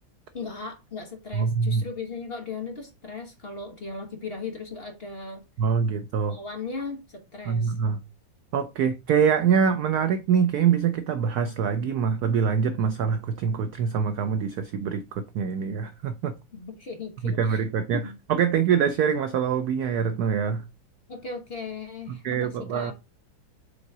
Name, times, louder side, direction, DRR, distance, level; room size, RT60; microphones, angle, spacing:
voice 1, 0.3-5.4 6.3-7.7 16.5-17.6 17.9-18.2 21.1-22.9, left 4 dB, 35° left, 1.1 m, -37 dB
voice 2, 1.3-1.8 5.6-6.4 7.4-8.0 8.5-16.3 17.2-18.0 18.3-20.6 22.1-22.9, right 7 dB, 80° right, 0.8 m, -24 dB
5.5 x 3.9 x 4.7 m
omnidirectional pair, 2.2 m